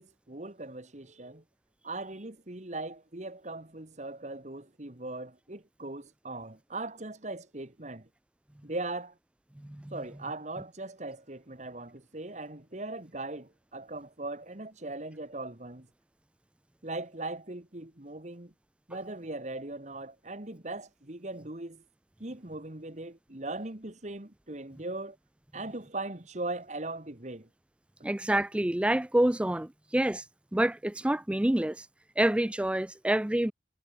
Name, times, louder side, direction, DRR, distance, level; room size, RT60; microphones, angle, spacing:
voice 1, 0.0-1.4 1.8-8.1 8.6-9.2 9.9-15.9 16.8-18.5 18.9-21.8 22.2-25.2 25.5-27.5, right 2 dB, 40° right, 1.8 m, -39 dB
voice 2, 9.6-9.9 28.0-30.2 30.5-31.9 32.2-33.5, right 1 dB, 5° right, 0.3 m, -27 dB
head